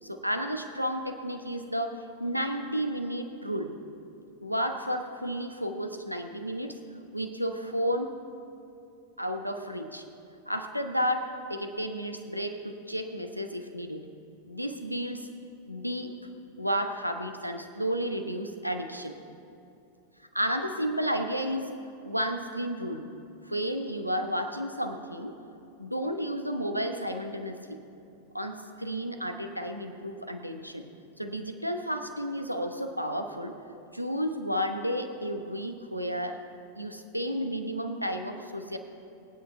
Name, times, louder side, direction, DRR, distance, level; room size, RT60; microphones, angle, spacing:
voice 1, 0.0-3.7 4.4-6.8 7.1-8.1 9.2-10.0 10.5-14.1 14.4-15.3 15.7-16.1 16.6-19.2 20.3-21.7 22.0-23.0 23.4-25.3 25.8-27.8 28.3-30.8 31.2-33.5 33.9-36.4 36.7-38.8, equal, 90° right, 6 dB, 0.9 m, -32 dB
23.0 x 9.2 x 3.3 m, 2.8 s
figure-of-eight pair, 90°, 0 cm